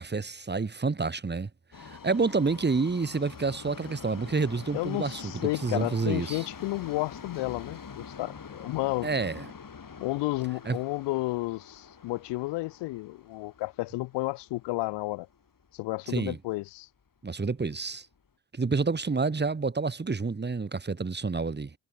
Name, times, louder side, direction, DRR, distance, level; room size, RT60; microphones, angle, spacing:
voice 1, 0.0-1.5 1.8-5.3 5.6-6.5 9.0-9.5 10.6-10.8 16.1-16.4 17.2-18.1 18.5-21.7, right 4 dB, 25° right, 1.3 m, -29 dB
Subway metro underground, 1.7-15.8 16.1-16.2 17.1-17.2 17.5-17.6 18.2-18.3, left 6 dB, 55° left, 7.6 m, -46 dB
voice 2, 4.7-9.1 10.0-15.3 15.7-16.9, left 20 dB, 90° left, 0.6 m, -32 dB
supercardioid pair, 50°, 41 cm